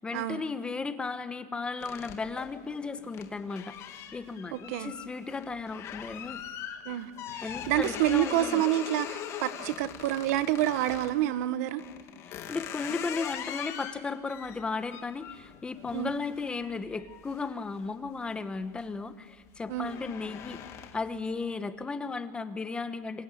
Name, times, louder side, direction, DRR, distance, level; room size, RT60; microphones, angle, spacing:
voice 1, 0.0-6.4 7.4-8.6 12.3-20.6 20.9-23.2, left 4 dB, 10° left, 11 dB, 1.1 m, -35 dB
sound 1, 1.8-11.2 11.8-18.2 18.6-19.0 19.3-21.2, left 9 dB, 30° left, 2.3 m, -42 dB
voice 2, 4.5-4.9 6.8-11.8 15.9-16.1 19.7-19.9, right 13 dB, 60° right, 12 dB, 1.6 m, -28 dB
26.5 x 26.5 x 8.5 m, 1.4 s
supercardioid pair, 165°, 9 cm